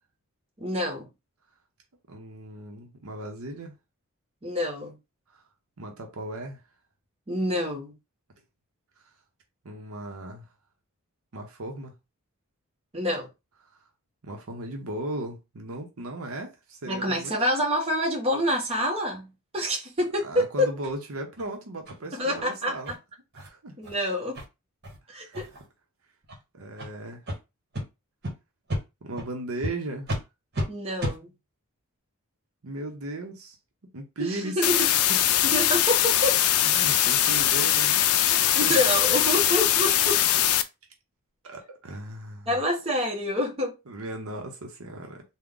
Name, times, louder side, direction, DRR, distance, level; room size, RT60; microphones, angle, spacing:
voice 1, 0.6-1.1 4.4-5.0 7.3-7.9 12.9-13.3 16.9-20.7 22.1-23.0 23.8-24.4 25.1-25.5 30.7-31.3 34.2-34.9 35.4-36.4 38.3-40.2 42.5-43.7, left 1 dB, 30° right, 1.1 m, -27 dB
voice 2, 2.1-3.7 5.3-5.4 5.8-6.6 9.6-10.5 11.3-11.9 13.7-13.8 14.2-17.3 20.2-23.0 23.3-23.7 25.1-25.4 26.5-27.2 29.0-30.1 32.6-33.6 33.9-34.7 34.9-35.4 36.5-38.7 41.4-42.6 43.9-45.2, right 1 dB, 75° right, 0.9 m, -37 dB
sound 1, 20.8-20.9 21.4-21.5 21.9-22.0 22.3-22.4 22.8-22.9 23.3-23.5 23.8-23.9 24.3-24.4 24.8-25.0 25.3-25.7 26.2-26.4 26.8-26.9 27.3-27.4 27.7-27.8 28.2-28.3 28.7-28.8 29.2-29.3 29.6-29.7 30.1-30.2 30.5-30.7 31.0-31.2, equal, 50° right, 1.3 m, -32 dB
sound 2, 34.6-40.6, left 11 dB, 75° left, 0.4 m, -22 dB
3.5 x 2.3 x 3.8 m
head